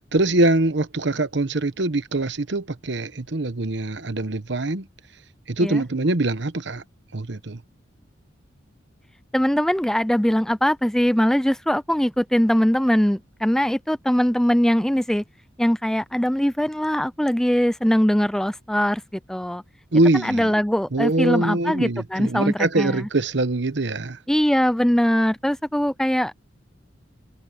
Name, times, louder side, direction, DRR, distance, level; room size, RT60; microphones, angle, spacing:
voice 1, 0.1-4.9 5.5-6.8 7.1-7.6 19.9-20.5 20.9-24.2, right 2 dB, 60° right, 1.1 m, -23 dB
voice 2, 9.3-15.2 15.6-19.0 19.3-19.6 20.1-23.1 24.3-26.3, equal, 5° left, 0.4 m, -21 dB
head